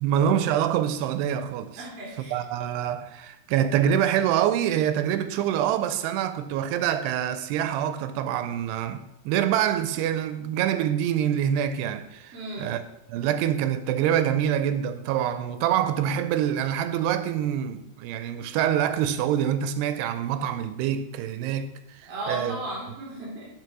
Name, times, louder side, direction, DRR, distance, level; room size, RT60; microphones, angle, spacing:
voice 1, 0.0-1.8 2.3-12.8 13.1-22.6, right 10 dB, 85° right, 2.7 m, -26 dB
voice 2, 1.8-2.4 12.3-12.7 22.1-23.5, right 2 dB, 40° right, 4.0 m, -35 dB
9.4 x 5.1 x 6.1 m
omnidirectional pair, 4.7 m